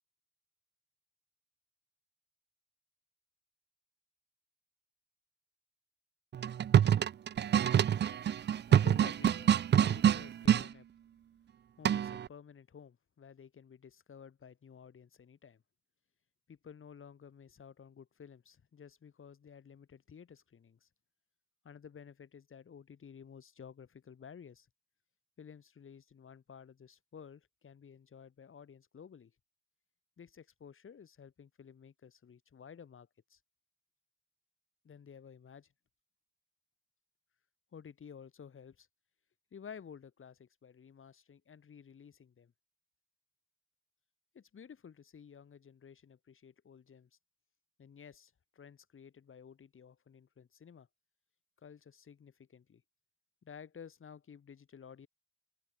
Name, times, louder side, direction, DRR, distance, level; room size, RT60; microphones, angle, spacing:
sound 1, 6.3-10.7 11.8-12.3, right 9 dB, 55° right, 0.4 m, -26 dB
voice 1, 8.7-10.9 11.8-15.6 16.5-20.9 21.6-24.7 25.4-29.3 30.2-33.4 34.8-35.7 37.7-38.9 39.5-42.5 44.3-47.1 47.8-50.9 51.6-52.8 53.4-55.1, left 7 dB, 85° left, 6.4 m, -53 dB
open air
wide cardioid pair, 135°, 21 cm